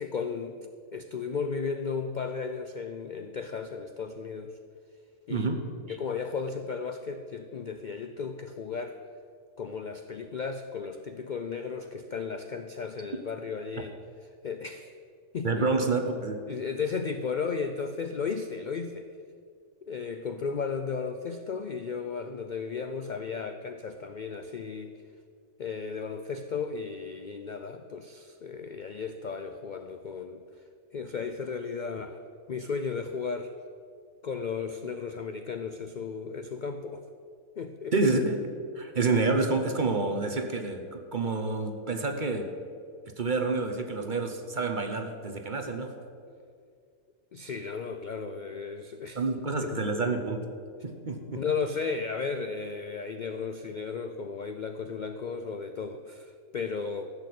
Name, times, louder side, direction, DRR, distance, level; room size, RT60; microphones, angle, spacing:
voice 1, 0.0-4.6 5.3-5.5 5.9-9.0 9.6-13.9 14.4-15.0 15.3-15.7 16.5-19.1 19.8-25.0 25.6-30.4 30.9-32.2 32.5-33.5 34.2-37.0 37.6-37.9 47.3-49.2 49.6-50.0 51.3-57.1, left 5 dB, 60° left, 8 dB, 0.5 m, -35 dB
voice 2, 5.3-6.0 15.4-16.5 37.9-38.4 38.7-42.5 43.2-45.9 49.1-50.5 50.8-51.4, right 3 dB, 40° right, 5 dB, 1.0 m, -28 dB
14.5 x 6.5 x 8.4 m, 2.2 s
omnidirectional pair, 1.5 m